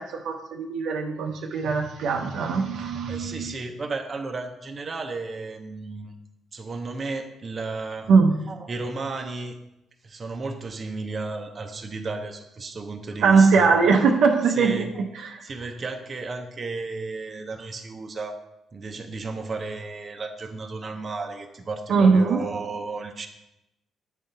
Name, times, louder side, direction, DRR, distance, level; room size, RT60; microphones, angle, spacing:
voice 1, 0.0-3.5 8.1-8.4 13.2-14.9 15.2-15.5 21.9-22.4, right 5 dB, 75° right, 3 dB, 0.7 m, -21 dB
voice 2, 3.1-6.1 6.5-8.1 8.5-9.6 10.0-14.0 14.5-15.1 15.4-18.4 18.7-23.3, right 3 dB, 40° right, 5 dB, 0.8 m, -33 dB
9.0 x 3.8 x 4.2 m, 0.89 s
cardioid pair, 90°, 0 cm